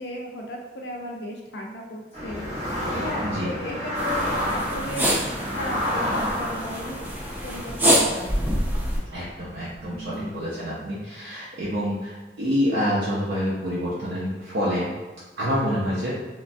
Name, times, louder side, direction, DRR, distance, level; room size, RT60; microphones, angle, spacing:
voice 1, 0.0-2.5 3.0-5.2 5.6-7.0 7.4-8.6 9.8-10.5, left 1 dB, 80° left, 0 dB, 0.5 m, -35 dB
sound 1, 2.1-10.2, equal, 35° right, 0.7 m, -31 dB
sound 2, 4.0-9.0, equal, 10° right, 0.3 m, -26 dB
voice 2, 9.1-14.9 15.4-16.1, equal, 80° right, -7 dB, 0.5 m, -27 dB
3.1 x 2.2 x 2.5 m, 1.3 s
head